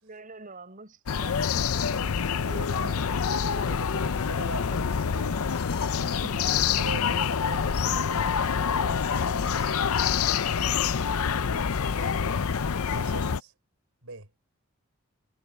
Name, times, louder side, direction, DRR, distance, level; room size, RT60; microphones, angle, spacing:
voice 1, 0.0-2.4 2.8-3.0 6.2-6.8 12.0-12.3, right 3 dB, 35° right, 6.1 m, -46 dB
sound 1, 1.1-13.4, left 6 dB, 70° left, 0.6 m, -26 dB
voice 2, 2.4-3.0 3.5-5.5 5.9-6.2 6.8-11.0 12.0-12.2 12.8-13.5 14.0-14.3, right 3 dB, 70° right, 4.9 m, -43 dB
head